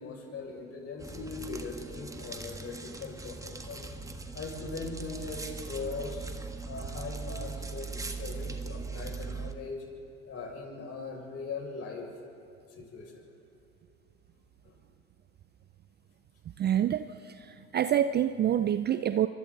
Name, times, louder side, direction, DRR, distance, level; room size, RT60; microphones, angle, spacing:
voice 1, 0.0-3.9 4.3-6.3 6.6-9.8 10.3-12.1 12.7-13.1 14.6-14.7, left 4 dB, 35° left, 0 dB, 6.6 m, -40 dB
sound 1, 1.0-9.5, right 4 dB, 10° right, 1.6 m, -40 dB
voice 2, 16.6-19.3, right 10 dB, 25° right, 12 dB, 0.6 m, -27 dB
28.0 x 24.5 x 4.1 m, 2.7 s
hypercardioid pair, 90°, 42 cm